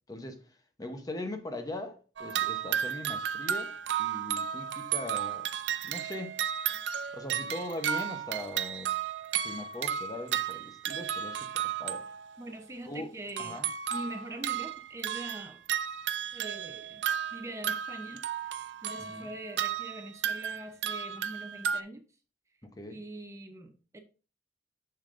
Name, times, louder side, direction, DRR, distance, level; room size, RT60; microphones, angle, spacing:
voice 1, 0.1-5.5 5.8-6.4 7.1-9.0 9.4-12.1 12.9-13.1 13.4-13.7 19.0-19.3 22.6-23.0, left 1 dB, 20° left, 0.8 m, -40 dB
sound 1, 2.2-12.4 13.3-21.8, right 9 dB, 65° right, 0.4 m, -33 dB
voice 2, 12.4-13.6 13.9-15.6 16.3-17.0 17.3-22.0 22.9-24.0, right 1 dB, 15° right, 0.7 m, -43 dB
6.9 x 6.7 x 2.5 m
head